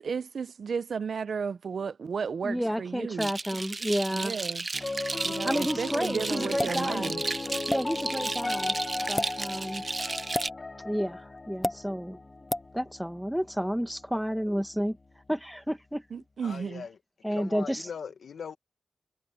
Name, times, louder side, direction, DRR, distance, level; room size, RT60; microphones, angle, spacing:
voice 1, 0.0-3.3 4.1-4.7 5.2-7.2 16.1-16.9, right 6 dB, 70° right, 0.7 m, -33 dB
voice 2, 2.4-4.4 5.4-7.1 7.7-8.8 9.1-9.8 10.8-12.2 12.7-15.0 15.3-16.0 17.2-17.9, equal, ahead, 1.5 m, -31 dB
sound 1, 3.2-10.5, right 3 dB, 35° right, 0.7 m, -34 dB
Piano, 4.7-15.1, left 2 dB, 30° left, 1.5 m, -37 dB
sound 2, 6.6-6.8 7.7-7.8 9.0-9.3 10.3-10.5 11.6-11.8 12.5-12.7, left 1 dB, 15° left, 0.8 m, -28 dB
voice 3, 16.4-16.9 17.3-18.6, left 6 dB, 85° left, 1.9 m, -39 dB
wide cardioid pair, 90°, 0 cm